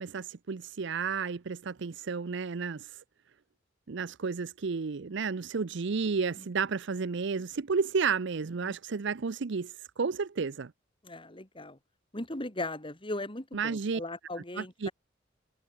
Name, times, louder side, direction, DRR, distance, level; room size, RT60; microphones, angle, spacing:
voice 1, 0.0-3.0 3.9-10.7 13.5-14.0 14.6-14.9, right 5 dB, 65° right, 0.6 m, -32 dB
voice 2, 11.0-11.8 12.1-14.9, left 2 dB, 25° left, 4.1 m, -38 dB
head